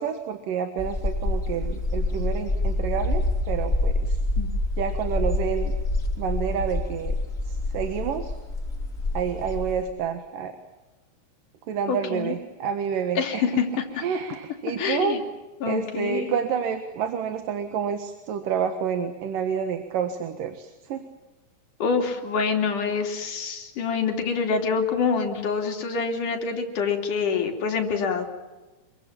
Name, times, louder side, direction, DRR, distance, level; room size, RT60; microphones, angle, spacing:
voice 1, 0.0-4.2 4.8-5.7 6.2-7.1 7.5-8.4 9.1-10.6 11.7-13.5 14.0-15.2 15.7-21.1, right 7 dB, 75° right, 7 dB, 3.2 m, -29 dB
sound 1, 0.8-9.8, left 2 dB, 25° left, 3.5 m, -27 dB
voice 2, 11.9-12.4 13.2-14.0 14.8-15.2 15.6-16.4 21.8-28.3, left 5 dB, 65° left, 3 dB, 4.5 m, -26 dB
27.5 x 23.5 x 7.3 m, 1.2 s
omnidirectional pair, 3.9 m